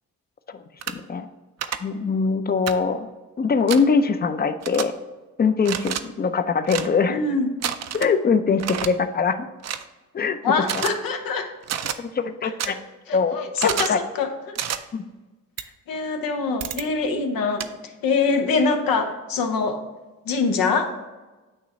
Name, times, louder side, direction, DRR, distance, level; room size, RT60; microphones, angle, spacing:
sound 1, 0.8-0.9 1.6-1.8 2.7-2.8 3.7-3.8 4.6-4.8 5.6-6.0 6.6-6.9 7.6-8.1 8.6-8.9 9.6-9.8 10.6-10.9 11.6-12.0 12.6-12.7 13.6-14.0 14.5-14.8 15.6-15.7 16.6-16.8 17.6-17.7, right 9 dB, 50° right, 0.5 m, -28 dB
voice 1, 0.9-1.3 1.8-3.1 3.4-4.9 5.4-7.2 7.9-9.5 10.1-10.8 12.0-12.8 13.1-13.4 13.9-14.0 14.9-15.0, left 5 dB, 30° left, 10 dB, 0.5 m, -22 dB
voice 2, 7.1-7.5 10.4-11.5 12.4-12.8 13.1-14.5 15.9-17.7 18.0-19.8 20.2-20.9, left 4 dB, 85° left, 6 dB, 0.9 m, -24 dB
8.9 x 3.0 x 4.2 m, 1.2 s
cardioid pair, 75°, 34 cm